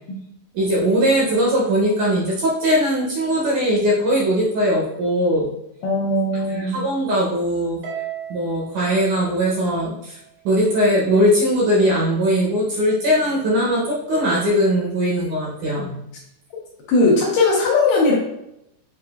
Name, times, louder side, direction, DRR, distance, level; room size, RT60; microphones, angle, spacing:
voice 1, 0.5-5.5 6.5-7.8 8.3-10.2 10.5-16.0, equal, 75° right, -5 dB, 1.9 m, -20 dB
voice 2, 5.8-6.8 16.9-18.2, left 2 dB, 75° left, -3 dB, 2.1 m, -18 dB
Harp, 7.8-10.3, right 10 dB, 90° right, 2.6 m, -36 dB
6.7 x 2.4 x 2.3 m, 0.82 s
omnidirectional pair, 4.2 m